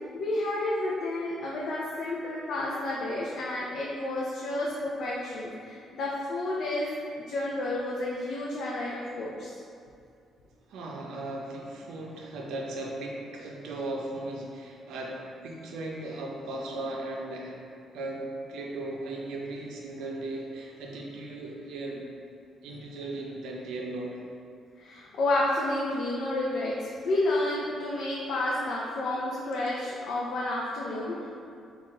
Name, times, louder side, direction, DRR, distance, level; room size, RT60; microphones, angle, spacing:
voice 1, 0.1-6.9 7.2-9.5 24.8-31.3, left 2 dB, 70° left, -5 dB, 0.5 m, -30 dB
voice 2, 10.7-17.6 17.9-22.0 22.6-24.2, right 2 dB, 85° right, -1 dB, 0.5 m, -37 dB
3.7 x 2.4 x 3.7 m, 2.3 s
cardioid pair, 90°, 0 cm